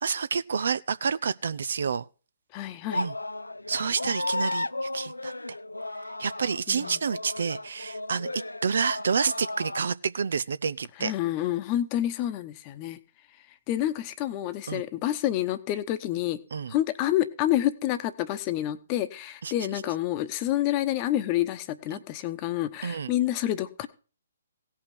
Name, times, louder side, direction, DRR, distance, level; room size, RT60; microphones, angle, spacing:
voice 1, 0.0-2.1 2.9-3.1 3.7-5.3 6.2-11.1 14.7-14.8 16.5-16.7 19.4-19.8 21.9-22.0 22.8-23.1, right 6 dB, 60° right, 0.5 m, -29 dB
voice 2, 2.5-3.0 6.7-6.9 11.0-13.0 13.7-16.4 16.7-23.9, left 13 dB, 30° left, 1.0 m, -28 dB
sound 1, 2.9-9.8, left 2 dB, 90° left, 0.5 m, -34 dB
17.0 x 5.7 x 6.1 m
figure-of-eight pair, 130°, 0 cm